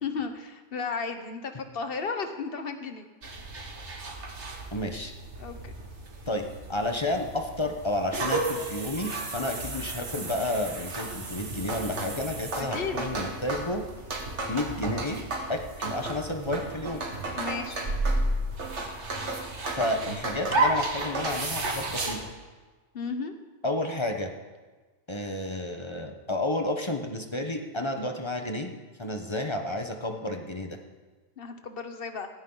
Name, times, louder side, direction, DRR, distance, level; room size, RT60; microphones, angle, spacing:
voice 1, 0.0-3.1 5.4-5.7 12.5-13.1 17.4-17.8 22.9-23.3 31.4-32.3, left 5 dB, 50° left, 7 dB, 1.3 m, -34 dB
sound 1, 3.2-22.2, right 2 dB, 70° right, 1.9 m, -32 dB
voice 2, 4.7-5.1 6.3-13.8 14.5-15.2 15.5-17.0 19.7-22.3 23.6-24.3 25.1-28.7 29.0-30.8, left 1 dB, 25° left, 4 dB, 1.1 m, -31 dB
15.5 x 15.5 x 4.0 m, 1.3 s
omnidirectional pair, 1.2 m